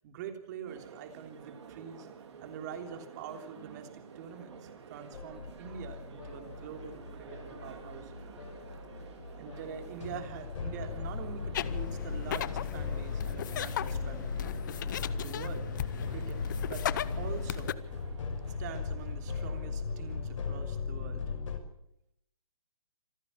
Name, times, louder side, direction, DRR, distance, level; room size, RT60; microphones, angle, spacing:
voice 1, 0.0-2.1 2.4-8.1 9.4-14.5 15.2-17.8 18.4-21.3, right 7 dB, 30° right, 6 dB, 3.3 m, -45 dB
sound 1, 0.7-20.5, right 6 dB, 50° right, 3.8 m, -51 dB
sound 2, 5.1-21.6, left 5 dB, 60° left, 5.5 m, -37 dB
sound 3, 11.5-17.7, left 11 dB, 30° left, 0.8 m, -37 dB
27.0 x 17.0 x 8.4 m, 0.78 s
hypercardioid pair, 160°, 19 cm